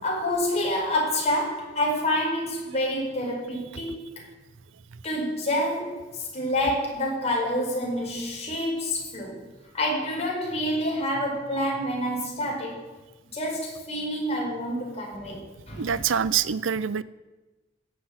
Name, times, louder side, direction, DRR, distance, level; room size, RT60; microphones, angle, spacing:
voice 1, 0.0-4.2 5.0-9.5 9.7-12.8 13.3-16.0, left 1 dB, 35° left, -2 dB, 5.0 m, -28 dB
voice 2, 15.8-17.0, right 7 dB, 80° right, 17 dB, 0.5 m, -25 dB
15.5 x 7.9 x 8.7 m, 1.2 s
head